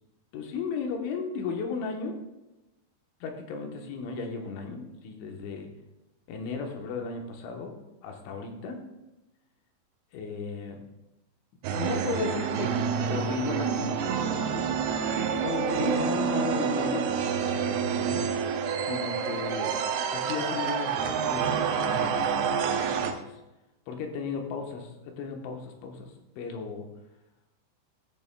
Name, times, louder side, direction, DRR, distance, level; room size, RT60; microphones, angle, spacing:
voice 1, 0.3-2.2 3.2-5.7 6.3-7.7 8.0-8.8 10.1-10.8 11.7-12.7 13.1-13.9 15.4-18.3 18.8-19.8 20.1-23.4 23.9-26.9, left 5 dB, 80° left, 3 dB, 3.6 m, -35 dB
sound 1, 11.6-23.1, right 7 dB, 85° right, 2.2 m, -28 dB
17.0 x 8.2 x 2.3 m, 0.99 s
omnidirectional pair, 5.4 m